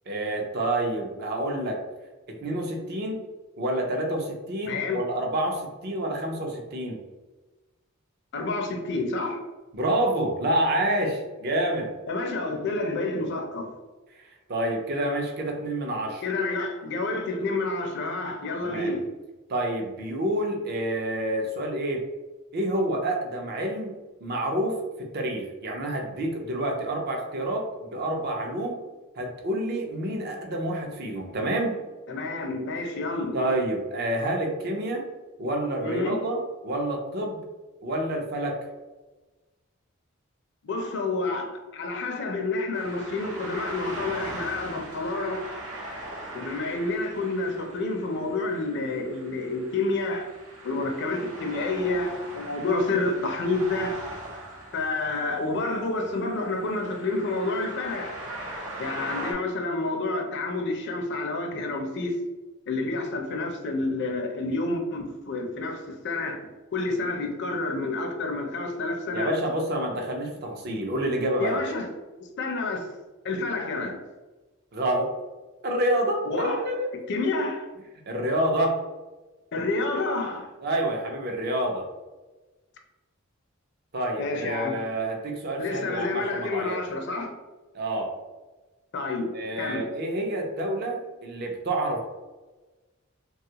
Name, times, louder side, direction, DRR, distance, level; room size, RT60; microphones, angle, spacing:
voice 1, 0.1-1.8 2.3-3.2 3.6-7.0 9.7-11.9 14.2-14.3 14.5-16.2 18.6-18.9 19.5-22.0 22.5-23.9 24.2-28.8 29.2-31.8 33.3-35.0 35.4-37.4 37.8-38.6 69.1-71.6 74.7-75.1 75.6-76.9 78.1-78.8 80.6-81.8 83.9-86.8 87.7-88.1 89.3-92.0, right 1 dB, 50° right, 0.6 m, -28 dB
voice 2, 4.6-5.0 8.3-9.4 12.1-13.7 16.2-19.1 32.1-33.4 35.8-36.2 40.6-45.4 46.3-50.3 50.6-53.9 54.7-58.2 58.8-62.2 62.7-66.4 66.7-69.3 71.4-71.9 72.4-72.9 73.2-74.0 76.3-76.6 77.1-77.7 79.5-80.5 84.2-84.8 85.6-87.3 88.9-89.9, left 2 dB, 55° left, 0.5 m, -29 dB
sound 1, 42.7-59.3, right 1 dB, 85° right, 0.8 m, -40 dB
3.3 x 2.3 x 2.8 m
head